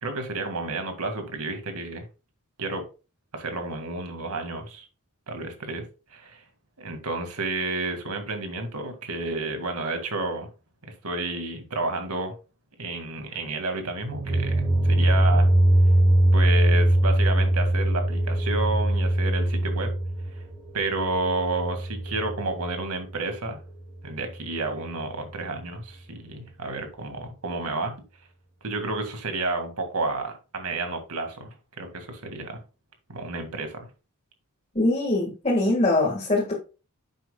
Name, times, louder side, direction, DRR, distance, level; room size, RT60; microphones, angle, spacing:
voice 1, 0.0-2.1 2.6-2.8 3.3-4.9 5.3-6.4 6.8-10.5 10.8-12.4 12.8-15.5 16.3-19.9 20.3-20.4 20.7-23.6 24.0-28.0 28.6-32.6 33.1-33.9, right 2 dB, 90° right, 6 dB, 2.0 m, -31 dB
sound 1, 14.1-23.0, right 1 dB, 40° right, 3.4 m, -22 dB
voice 2, 34.8-36.5, left 2 dB, 30° left, -3 dB, 1.8 m, -22 dB
10.5 x 7.7 x 2.3 m, 0.32 s
head